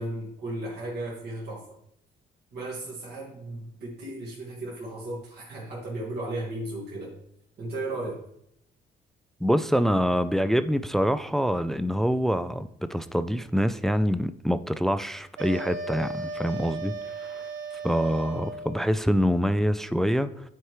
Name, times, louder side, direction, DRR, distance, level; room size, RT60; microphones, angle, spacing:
voice 1, 0.0-1.7 2.5-7.1 7.6-8.2, right 1 dB, 55° right, 1.9 m, -35 dB
voice 2, 9.4-16.9 17.3-17.4 17.8-20.5, equal, ahead, 0.3 m, -25 dB
sound 1, 15.4-18.9, right 3 dB, 90° right, 1.0 m, -36 dB
9.6 x 4.5 x 3.1 m
cardioid pair, 90°, 20 cm